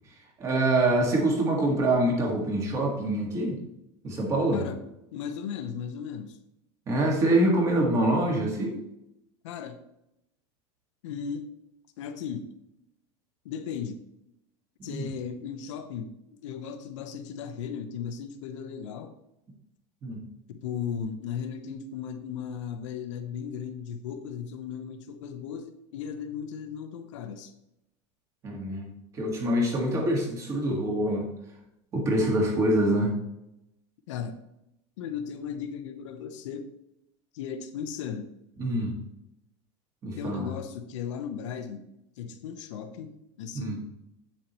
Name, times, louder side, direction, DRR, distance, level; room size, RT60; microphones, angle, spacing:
voice 1, 0.4-3.6 4.0-4.6 6.9-8.8 14.8-15.1 20.0-20.2 28.4-28.9 29.1-31.3 31.9-33.1 38.6-39.0 40.0-40.5 43.5-43.8, right 1 dB, 20° right, 0 dB, 1.7 m, -25 dB
voice 2, 4.5-4.8 5.1-6.4 9.4-9.8 11.0-11.5 12.0-12.5 13.4-14.0 14.8-16.1 16.4-19.1 20.6-27.5 34.1-34.4 35.0-36.7 37.3-38.3 40.2-41.9 42.2-43.8, left 7 dB, 90° left, 7 dB, 1.0 m, -36 dB
8.3 x 7.3 x 3.0 m, 0.86 s
supercardioid pair, 175°, 15 cm